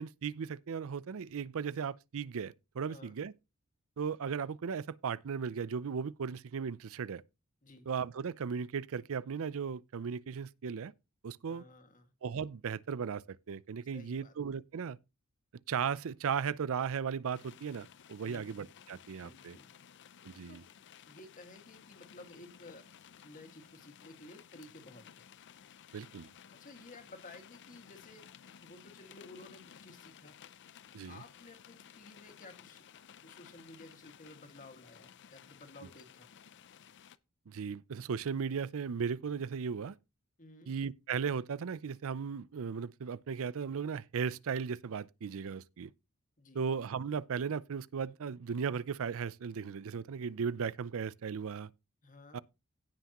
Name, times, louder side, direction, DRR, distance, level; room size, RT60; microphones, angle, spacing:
voice 1, 0.0-3.3 4.0-7.2 7.9-10.9 11.2-11.6 12.2-15.0 15.7-19.6 20.2-20.6 25.9-26.3 30.9-31.2 37.5-40.0 40.7-45.9 46.5-51.7 52.3-52.4, right 6 dB, 65° right, 0.5 m, -36 dB
voice 2, 11.5-12.1 13.9-14.3 18.2-18.5 19.2-19.7 20.5-20.6 21.1-22.9 23.2-25.2 26.5-28.3 28.6-30.4 31.1-32.8 33.2-36.3 40.4-40.7 46.4-46.6 52.0-52.4, left 2 dB, 35° left, 1.9 m, -54 dB
sound 1, 17.3-37.2, left 8 dB, 55° left, 0.5 m, -56 dB
17.0 x 5.8 x 2.9 m
head